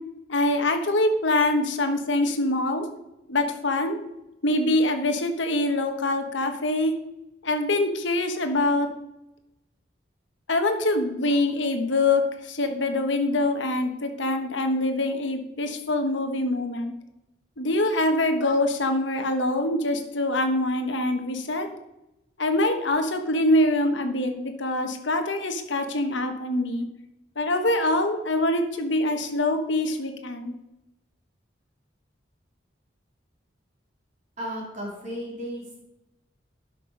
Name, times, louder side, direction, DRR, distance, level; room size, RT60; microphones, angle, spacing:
voice 1, 0.3-2.9 3.3-4.0 4.4-6.9 7.4-8.9 10.5-12.2 12.5-16.9 17.6-21.7 22.4-26.9 27.4-30.5, left 1 dB, 85° left, 6 dB, 1.3 m, -24 dB
voice 2, 34.4-35.8, equal, 40° right, -4 dB, 3.9 m, -34 dB
11.5 x 6.0 x 5.2 m, 0.89 s
head